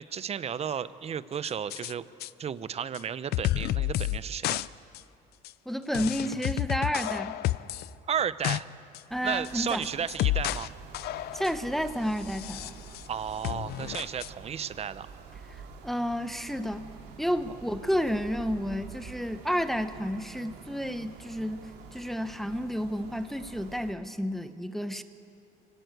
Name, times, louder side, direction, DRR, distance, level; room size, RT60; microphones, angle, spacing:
voice 1, 0.0-2.1 2.4-4.6 8.1-8.7 9.2-10.7 13.1-15.1, right 8 dB, 40° right, 15 dB, 0.8 m, -33 dB
sound 1, 1.4-1.9 2.2-2.3 2.9-3.0 3.3-4.2 4.4-4.7 4.9-5.0 5.4-5.5 5.9-7.9 8.2-8.6 8.9-9.0 9.4-10.7 10.9-11.6 12.2-13.1 13.4-14.3, left 15 dB, 70° left, 0.5 m, -30 dB
voice 2, 5.7-7.4 9.1-9.9 11.3-12.8 15.8-16.9 17.2-25.0, equal, ahead, 9 dB, 0.9 m, -31 dB
sound 2, 9.1-23.9, right 5 dB, 75° right, 2.6 m, -47 dB
24.5 x 17.0 x 8.2 m, 2.6 s
cardioid pair, 110°, 17 cm